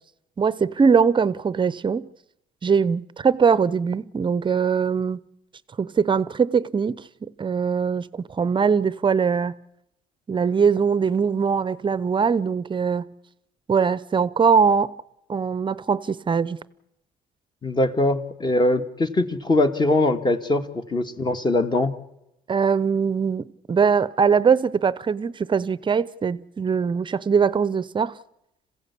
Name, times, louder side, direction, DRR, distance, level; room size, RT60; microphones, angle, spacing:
voice 1, 0.4-2.1 2.6-5.2 5.8-9.6 10.3-13.1 13.7-15.0 15.3-16.6 22.5-28.2, right 6 dB, 30° right, 0.8 m, -21 dB
voice 2, 17.6-21.9, left 2 dB, 25° left, 1.9 m, -22 dB
26.5 x 16.0 x 8.4 m
cardioid pair, 110°, 17 cm